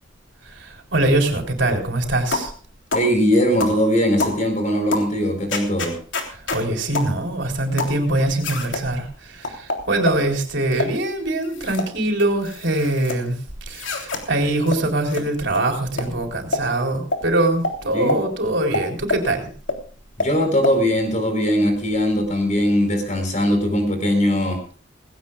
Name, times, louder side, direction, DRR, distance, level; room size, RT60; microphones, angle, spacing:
voice 1, 0.4-2.5 6.3-19.5, right 2 dB, 65° right, 3 dB, 3.9 m, -23 dB
sound 1, 2.3-2.5 2.9-3.1 3.6-3.8 4.2-4.4 4.9-5.1 5.5-6.6 6.9-7.1 7.8-8.0 8.4-8.8 9.4-10.2 10.7-10.9 11.4-11.9 12.2-13.2 13.7-14.2 14.7-14.8 15.1-15.2 15.5-15.6 16.0-16.1 16.5-16.7 17.1-17.2 17.6-17.8 18.1-18.2 18.7-19.3 19.7-19.8 20.2-20.3 20.6-20.8, left 2 dB, 75° left, 3.3 m, -26 dB
voice 2, 2.9-6.0 17.9-18.2 20.2-24.6, equal, 40° left, 6 dB, 4.6 m, -20 dB
19.5 x 17.0 x 2.4 m, 0.40 s
head